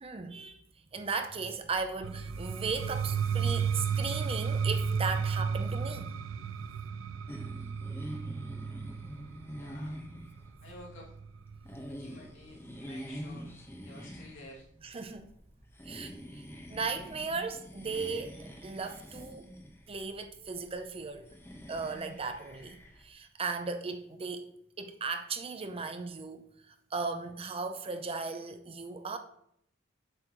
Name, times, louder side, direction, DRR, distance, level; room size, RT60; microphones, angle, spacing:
voice 1, 0.0-0.6 0.9-6.2 14.8-15.3 15.8-16.4 16.7-19.5 19.9-21.2 21.7-24.5 24.8-29.2, right 4 dB, 30° right, 0.6 m, -37 dB
sound 1, 2.0-11.8, right 6 dB, 80° right, 0.4 m, -33 dB
sound 2, 7.3-23.1, equal, 15° left, 1.1 m, -46 dB
voice 2, 9.6-10.0 10.6-11.1 11.9-13.5 13.8-14.7, left 1 dB, 85° left, 2.3 m, -51 dB
7.6 x 6.8 x 3.0 m
head